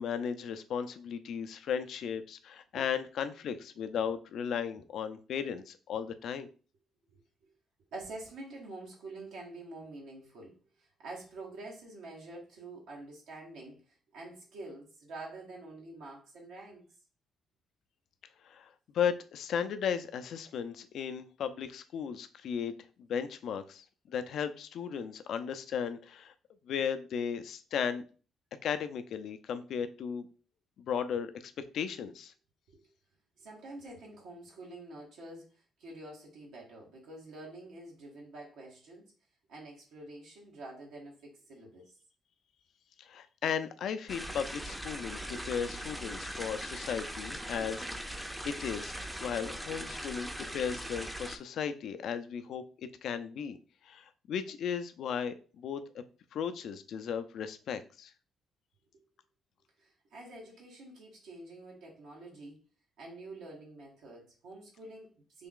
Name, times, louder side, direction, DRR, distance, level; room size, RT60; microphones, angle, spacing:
voice 1, 0.0-6.5 18.4-18.7 18.9-22.7 23.0-26.3 26.7-28.0 28.6-30.3 30.8-32.3 43.0-48.1 48.4-48.9 49.2-53.6 53.8-56.0 56.3-58.1, left 7 dB, 70° left, 10 dB, 0.4 m, -35 dB
voice 2, 7.9-16.8 32.7-32.8 33.4-39.1 39.5-42.0 59.8-62.6 63.0-65.5, right 2 dB, 85° right, -2 dB, 1.1 m, -47 dB
sound 1, 44.1-51.4, equal, 5° right, 0.5 m, -40 dB
3.4 x 2.3 x 3.7 m, 0.37 s
cardioid pair, 90°, 0 cm